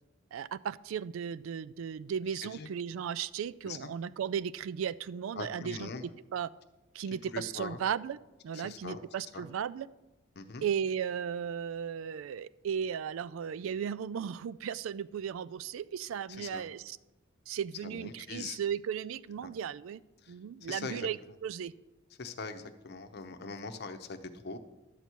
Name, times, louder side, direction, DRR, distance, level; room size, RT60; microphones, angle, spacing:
voice 1, 0.3-6.5 6.9-8.2 8.4-9.9 10.6-17.0 17.5-20.0 20.3-21.7, right 8 dB, 75° right, 17 dB, 0.3 m, -36 dB
voice 2, 5.4-6.0 7.1-7.8 8.5-9.0 9.3-9.4 10.4-10.6 16.3-16.6 17.8-18.6 19.4-19.5 20.2-20.3 20.7-21.1 22.2-24.6, left 4 dB, 50° left, 7 dB, 0.7 m, -41 dB
11.5 x 4.5 x 8.2 m, 1.0 s
head